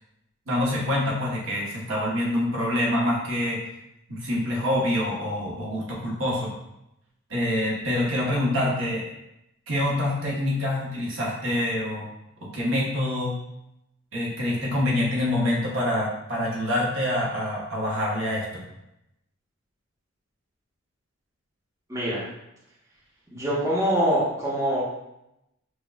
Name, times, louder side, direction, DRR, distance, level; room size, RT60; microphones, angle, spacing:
voice 1, 0.5-3.6 4.1-6.5 7.3-9.1 9.7-12.1 12.4-13.3 14.1-18.6, left 1 dB, 75° right, -4 dB, 1.2 m, -26 dB
voice 2, 21.9-22.3 23.3-24.8, equal, 15° right, -8 dB, 0.9 m, -24 dB
6.1 x 2.3 x 2.4 m, 0.85 s
head